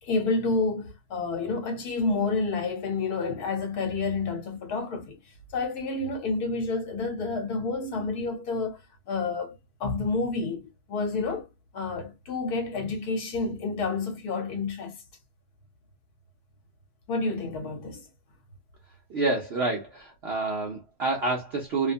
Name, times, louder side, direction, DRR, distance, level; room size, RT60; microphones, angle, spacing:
voice 1, 0.0-5.2 5.5-8.8 9.1-9.5 9.8-11.5 11.7-15.0 17.1-18.0, left 3 dB, 65° left, 1.4 m, -29 dB
voice 2, 19.1-21.9, right 3 dB, 60° right, 0.6 m, -28 dB
2.9 x 2.1 x 2.5 m
omnidirectional pair, 1.8 m